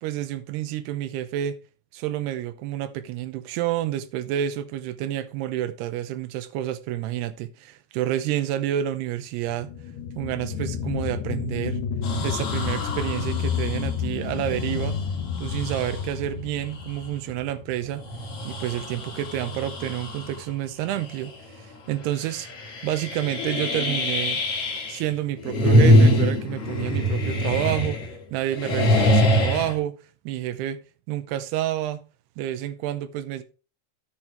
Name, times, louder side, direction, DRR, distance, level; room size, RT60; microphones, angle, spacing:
voice 1, 0.0-1.6 1.9-9.7 10.2-11.8 12.2-15.0 15.4-18.0 18.4-21.3 21.6-22.5 22.8-24.4 24.9-28.0 28.3-29.9 30.3-30.8 31.1-32.0 32.4-33.4, right 12 dB, 90° right, 2.9 m, -29 dB
sound 1, 9.4-18.5 19.0-19.1, left 7 dB, 90° left, 2.8 m, -31 dB
sound 2, 12.0-16.2 16.8-16.9 17.9-20.5 20.9-21.3 21.6-21.7 22.2-25.0 25.4-28.2 28.5-29.8, equal, 45° left, 2.6 m, -24 dB
10.5 x 7.5 x 3.3 m
omnidirectional pair, 4.5 m